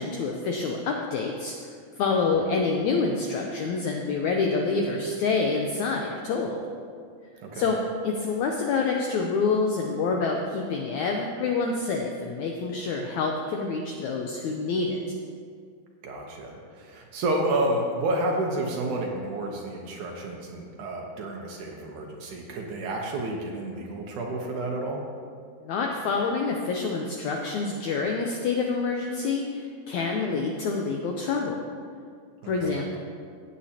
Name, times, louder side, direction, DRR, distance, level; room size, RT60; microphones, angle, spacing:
voice 1, 0.0-1.5 2.0-6.6 7.5-7.8 8.0-15.0 25.6-31.6 32.5-33.0, left 4 dB, 80° left, 1 dB, 1.7 m, -27 dB
voice 2, 16.0-25.0 32.4-32.7, right 1 dB, 65° right, 0 dB, 2.2 m, -30 dB
16.5 x 8.3 x 2.9 m, 2.1 s
omnidirectional pair, 4.2 m